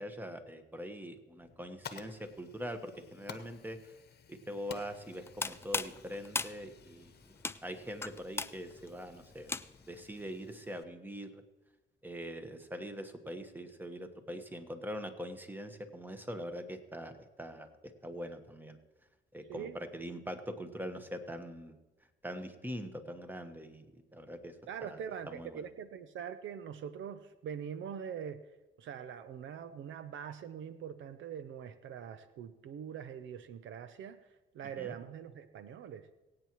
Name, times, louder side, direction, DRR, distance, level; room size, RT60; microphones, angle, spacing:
voice 1, 0.0-3.9 4.3-7.1 7.6-9.5 9.9-11.4 12.0-17.7 18.0-18.8 19.3-21.8 22.2-23.9 24.1-24.5 24.8-25.0 25.3-25.6 34.8-35.0, equal, 10° right, 7 dB, 1.2 m, -43 dB
Fire, 1.4-10.8, left 7 dB, 55° left, 1.0 m, -54 dB
sound 1, 5.1-10.0, left 3 dB, 10° left, 0.4 m, -39 dB
voice 2, 24.7-28.4 28.8-34.2 34.5-36.1, right 8 dB, 75° right, 11 dB, 0.7 m, -43 dB
23.0 x 8.7 x 3.1 m, 1.1 s
cardioid pair, 90°, 20 cm